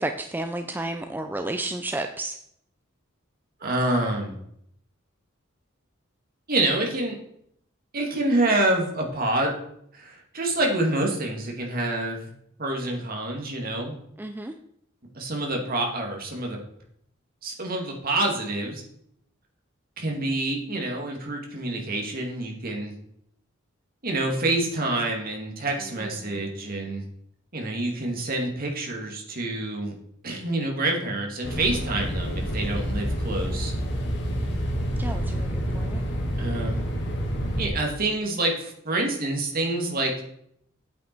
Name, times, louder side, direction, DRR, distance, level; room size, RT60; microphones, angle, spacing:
voice 1, 0.0-2.4 14.2-14.5 25.8-26.1 35.0-36.0, right 2 dB, 10° right, 6 dB, 0.4 m, -32 dB
voice 2, 3.6-4.3 6.5-7.2 7.9-9.5 9.9-12.3 12.6-14.0 15.1-16.6 17.4-18.8 20.0-22.9 24.0-27.0 27.5-29.9 30.2-33.7 36.4-36.8 37.6-40.2, right 2 dB, 50° right, 1 dB, 2.2 m, -27 dB
sound 1, 31.4-37.7, equal, 60° left, 1.9 m, -28 dB
8.7 x 8.6 x 4.5 m, 0.72 s
head